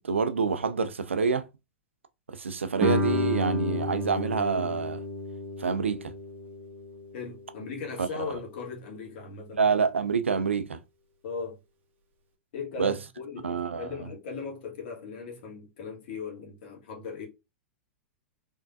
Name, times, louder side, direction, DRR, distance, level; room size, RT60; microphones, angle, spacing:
voice 1, 0.1-1.5 2.3-5.0 5.6-6.1 8.0-8.3 9.5-10.8 12.8-12.9 13.4-13.9, right 5 dB, 85° right, 0.5 m, -27 dB
Guitar, 2.8-8.2, equal, 35° right, 1.3 m, -32 dB
voice 2, 7.1-9.6 11.2-11.6 12.5-17.3, left 5 dB, 60° left, 1.7 m, -38 dB
3.7 x 3.5 x 2.6 m
hypercardioid pair, 100°, 6 cm